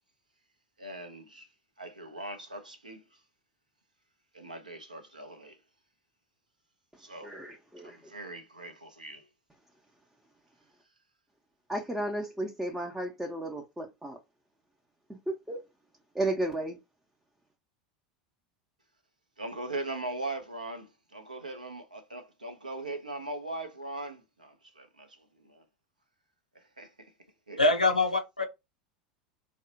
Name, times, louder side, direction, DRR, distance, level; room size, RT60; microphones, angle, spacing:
voice 1, 0.8-1.5 1.8-3.2 4.3-5.6 7.0-7.4 7.8-9.3 19.4-25.6 26.5-27.1 27.5-27.6, right 2 dB, 85° right, 0.5 m, -40 dB
voice 2, 7.2-8.0 11.7-14.2 15.1-15.6 16.1-16.8, right 1 dB, 5° right, 0.5 m, -33 dB
voice 3, 27.6-28.4, left 2 dB, 90° left, 0.3 m, -24 dB
2.7 x 2.1 x 2.6 m
figure-of-eight pair, 80°, 4 cm